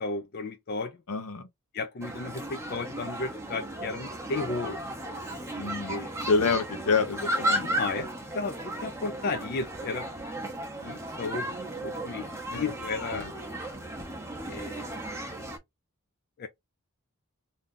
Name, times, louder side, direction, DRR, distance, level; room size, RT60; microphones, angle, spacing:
voice 1, 0.0-1.0 1.7-4.8 5.9-6.1 7.6-10.1 10.8-11.5 11.8-13.3 14.5-14.9 16.4-16.5, left 3 dB, 45° left, 0.4 m, -34 dB
voice 2, 1.1-1.5 5.6-6.0 6.3-7.7 12.5-12.7 13.1-13.3, left 4 dB, 80° left, 0.7 m, -27 dB
sound 1, 2.0-15.6, right 1 dB, 15° right, 0.6 m, -35 dB
2.6 x 2.3 x 3.5 m
head